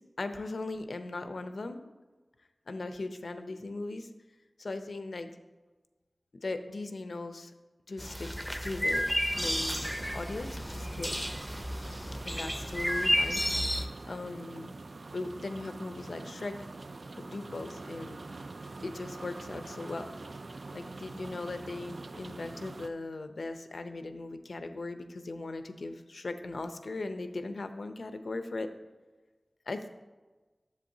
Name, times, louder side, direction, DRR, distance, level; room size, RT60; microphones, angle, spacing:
voice 1, 0.0-1.9 2.7-4.1 4.6-5.3 6.3-7.5 7.9-8.3 8.6-9.1 9.4-11.3 12.2-13.4 14.1-14.7 15.1-16.6 17.1-18.2 18.8-20.1 20.7-28.7 29.7-29.9, left 2 dB, 80° left, 8 dB, 0.6 m, -38 dB
sound 1, 8.0-13.9, equal, ahead, 0.6 m, -31 dB
sound 2, 9.3-22.9, right 3 dB, 70° right, 0.3 m, -45 dB
10.5 x 7.5 x 2.7 m, 1.2 s
wide cardioid pair, 60°, 0 cm